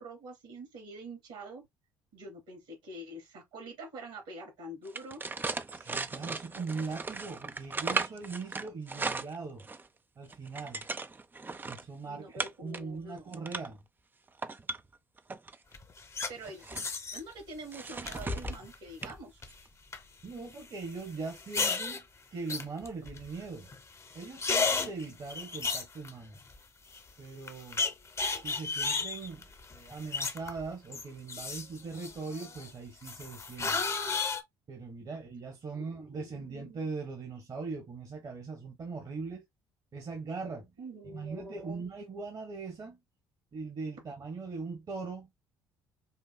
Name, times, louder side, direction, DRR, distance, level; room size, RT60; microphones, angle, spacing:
voice 1, 0.0-1.7 2.1-5.2 12.1-13.4 16.3-16.8 17.1-19.4 35.7-36.7 40.8-41.8, right 1 dB, 75° right, 2.8 m, -45 dB
sound 1, 4.8-9.9 10.2-11.8 12.4-12.8 13.2-13.8 14.3-15.6 16.2-16.9 17.7-18.6 19.0-19.2 19.5-19.7, right 3 dB, 20° right, 0.4 m, -37 dB
voice 2, 5.7-9.6 10.2-10.8 11.7-13.8 20.2-22.0 22.3-23.7 24.1-26.3 27.2-27.8 28.4-29.4 29.7-33.8 34.7-39.4 39.9-40.7 41.1-43.0 43.5-45.3, right 4 dB, 45° right, 1.3 m, -40 dB
sound 2, 15.7-16.3 16.8-17.2 18.0-18.7 19.0-19.5 19.9-20.0 21.3-22.0 22.5-23.4 23.7-23.8 24.1-26.6 26.9-27.0 27.5-30.7 30.9-32.7 33.0-34.4, left 4 dB, 30° left, 0.8 m, -33 dB
5.6 x 2.2 x 2.2 m
hypercardioid pair, 55°, 10 cm